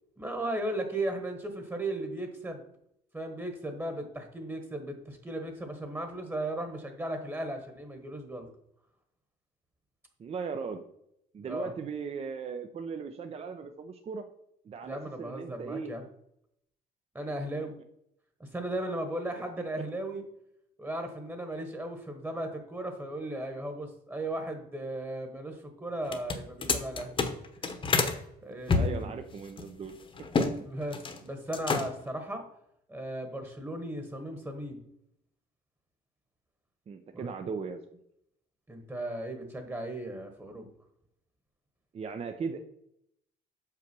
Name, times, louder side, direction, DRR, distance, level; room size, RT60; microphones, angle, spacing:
voice 1, 0.2-2.6 3.1-8.5 11.4-11.7 14.8-16.0 17.1-17.8 18.4-20.2 20.8-27.2 28.4-29.2 30.6-32.5 32.9-34.8 37.1-37.3 38.7-40.7, right 1 dB, 15° right, 6 dB, 1.3 m, -36 dB
voice 2, 10.2-10.8 11.3-14.2 14.6-15.9 28.7-30.0 30.4-30.5 36.9-37.8 41.9-42.6, right 5 dB, 35° right, 7 dB, 0.7 m, -37 dB
sound 1, 26.0-28.2 28.7-30.5 30.8-31.2 31.5-32.1, left 4 dB, 30° left, 1.1 m, -29 dB
6.6 x 5.8 x 6.0 m, 0.76 s
cardioid pair, 110°, 17 cm